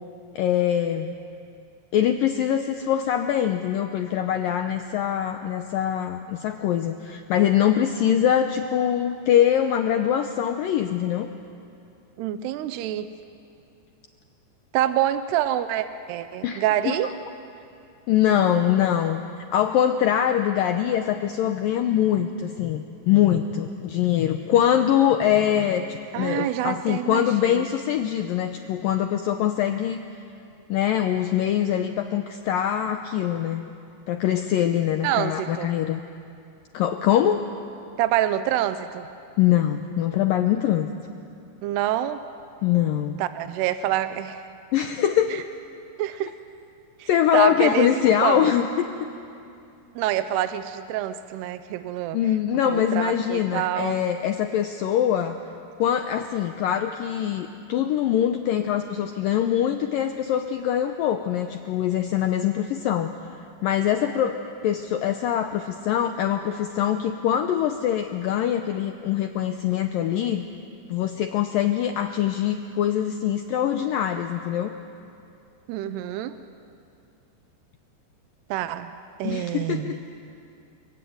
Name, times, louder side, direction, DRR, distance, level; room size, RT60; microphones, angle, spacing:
voice 1, 0.3-1.1 1.9-11.3 16.4-16.9 18.1-19.2 19.5-30.0 30.7-33.6 34.1-36.0 36.7-37.4 39.4-40.9 42.6-43.2 44.7-45.5 47.1-48.6 52.1-55.4 55.8-63.1 63.6-64.4 64.6-70.4 70.9-74.7 79.2-80.0, left 10 dB, 90° left, 6 dB, 2.0 m, -23 dB
voice 2, 12.2-13.1 14.7-17.1 26.1-27.3 27.5-27.7 35.0-35.7 38.0-39.1 41.6-42.2 43.2-44.5 45.3-45.4 46.0-46.3 47.0-48.5 50.0-52.2 52.7-54.0 75.7-76.4 78.5-78.9 79.2-80.0, right 12 dB, 80° right, 11 dB, 2.6 m, -26 dB
27.5 x 23.0 x 9.5 m, 2.6 s
omnidirectional pair, 5.1 m